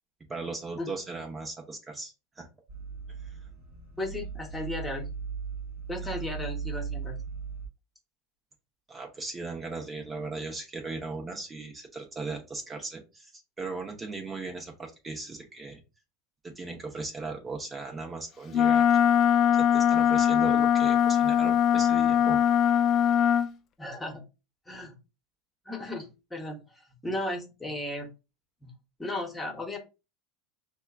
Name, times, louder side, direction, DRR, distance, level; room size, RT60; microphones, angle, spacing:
voice 1, 0.3-2.5 3.2-3.3 6.0-6.1 8.9-13.3 13.6-15.8 16.4-19.0 19.7-22.4, right 3 dB, 25° right, 1 dB, 0.9 m, -38 dB
sound 1, 2.7-7.7, right 6 dB, 60° right, 1.5 m, -37 dB
voice 2, 4.0-5.1 5.9-7.2 23.8-24.2 24.7-24.9 25.7-28.1 28.6-28.7 29.0-29.8, left 1 dB, 15° left, 2 dB, 1.1 m, -35 dB
Wind instrument woodwind instrument, 18.5-23.5, left 9 dB, 45° left, 0.3 m, -22 dB
5.4 x 2.3 x 2.4 m, 0.28 s
hypercardioid pair, 90°, 0 cm